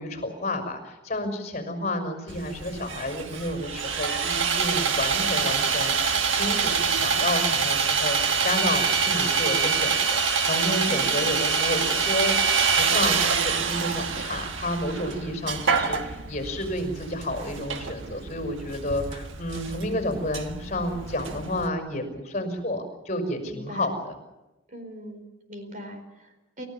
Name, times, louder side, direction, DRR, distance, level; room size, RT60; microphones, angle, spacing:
voice 1, 0.0-24.1, left 1 dB, 35° left, 5 dB, 5.9 m, -31 dB
Sawing, 2.3-21.7, right 5 dB, 85° right, 1.4 m, -26 dB
voice 2, 10.9-11.2 23.5-23.9 24.7-26.7, equal, 45° right, 6 dB, 4.4 m, -41 dB
29.5 x 14.5 x 7.3 m, 1.0 s
head